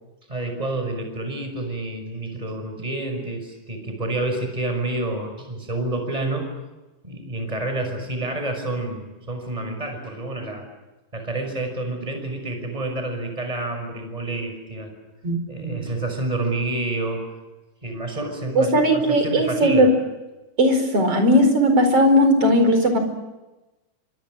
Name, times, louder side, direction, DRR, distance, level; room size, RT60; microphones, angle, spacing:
voice 1, 0.3-6.5 7.0-10.7 11.1-14.9 15.5-17.3 17.8-19.9, right 2 dB, 10° right, 6 dB, 5.7 m, -29 dB
voice 2, 15.2-15.9 18.6-19.9 20.6-23.0, equal, 45° right, 6 dB, 5.6 m, -18 dB
29.5 x 26.0 x 6.4 m, 1.1 s
omnidirectional pair, 3.9 m